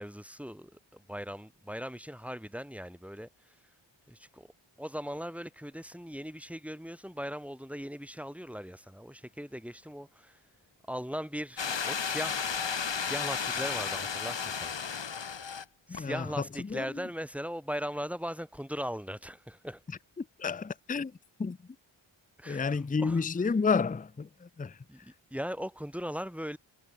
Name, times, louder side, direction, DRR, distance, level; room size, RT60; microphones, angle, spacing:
voice 1, 0.0-3.3 4.1-4.5 4.8-10.4 10.9-12.5 13.0-14.7 15.9-19.8 22.4-23.2 24.9-26.6, equal, 5° right, 3.2 m, -39 dB
sound 1, 11.6-15.6 15.9-16.0, left 6 dB, 65° left, 2.6 m, -33 dB
voice 2, 15.9-16.3 16.7-16.9 20.2-21.1 21.4-21.6 22.5-24.8, left 5 dB, 20° left, 0.5 m, -30 dB
wide cardioid pair, 120°, 47 cm